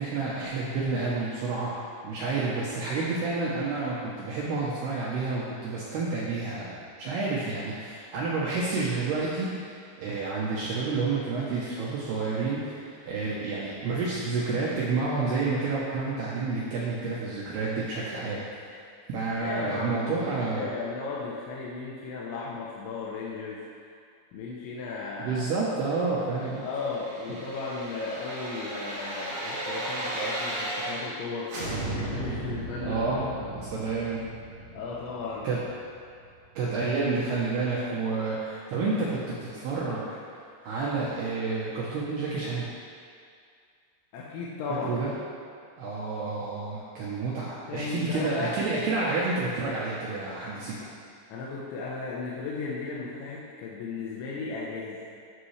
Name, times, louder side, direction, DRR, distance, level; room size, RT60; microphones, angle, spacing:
voice 1, 0.0-1.7 2.0-6.7 7.0-18.8 19.1-20.7 25.2-26.6 32.8-33.3 33.6-34.2 35.4-35.6 36.6-40.1 40.6-42.7 44.8-45.1 45.8-50.8, right 3 dB, 75° right, -6 dB, 2.4 m, -29 dB
voice 2, 19.4-23.6 24.3-25.4 26.6-31.6 32.0-33.0 33.4-33.6 34.7-35.5 44.1-45.0 47.5-48.6 51.3-55.0, left 4 dB, 75° left, -5 dB, 3.0 m, -35 dB
sound 1, 26.5-31.2 31.5-36.3 36.7-36.8, right 1 dB, 45° right, 2.7 m, -36 dB
12.5 x 6.7 x 3.2 m, 2.3 s
omnidirectional pair, 5.6 m